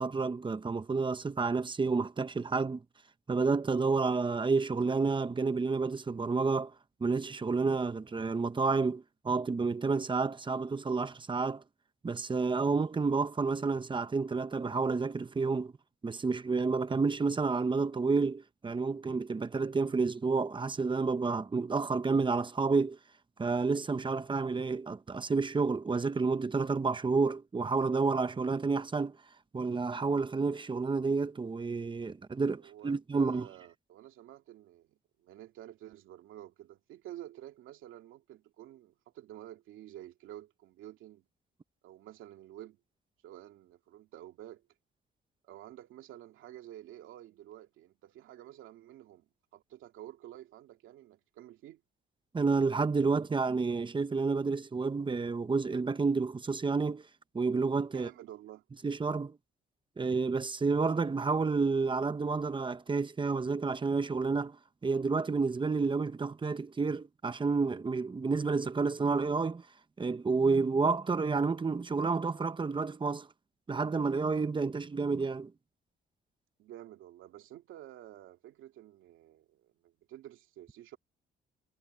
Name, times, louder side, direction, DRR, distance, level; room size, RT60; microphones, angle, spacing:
voice 1, 0.0-2.8 3.3-6.7 7.0-11.6 12.0-15.7 16.0-23.0 23.4-29.2 29.5-33.5 52.3-57.0 57.3-58.1 58.8-59.4 60.0-64.6 64.8-69.6 70.0-73.3 73.7-75.5, right 4 dB, 25° right, 1.1 m, -30 dB
voice 2, 32.4-41.2 41.8-42.8 43.2-44.6 45.4-51.8 57.9-58.6 76.6-81.0, right 13 dB, 90° right, 2.5 m, -50 dB
cardioid pair, 90°, 20 cm